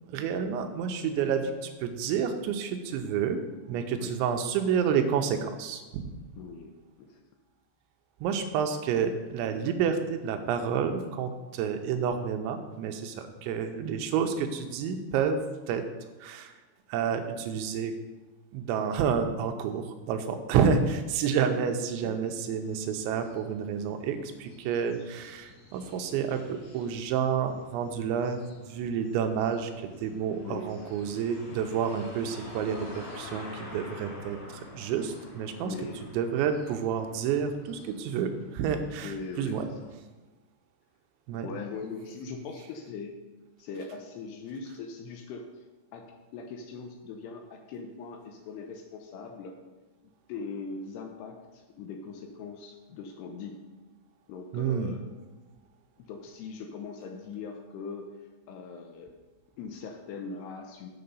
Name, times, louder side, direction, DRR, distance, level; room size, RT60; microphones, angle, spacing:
voice 1, 0.1-3.4 3.7-6.1 8.2-15.4 15.7-15.8 16.2-16.6 16.9-17.9 18.5-35.7 36.1-39.7 41.3-41.5 54.5-54.9, right 7 dB, 85° right, 7 dB, 3.0 m, -29 dB
voice 2, 6.4-6.7 7.0-7.2 21.5-21.7 22.0-22.4 30.4-30.7 35.6-36.0 39.0-39.9 41.4-43.1 43.6-45.4 45.9-46.0 46.3-49.5 50.3-53.6 54.3-55.0 56.1-58.1 58.5-59.1 59.6-60.9, left 4 dB, 75° left, 3 dB, 2.6 m, -40 dB
sound 1, 22.5-39.9, left 2 dB, 50° left, 3.5 m, -49 dB
7.8 x 6.8 x 5.4 m, 1.2 s
omnidirectional pair, 5.3 m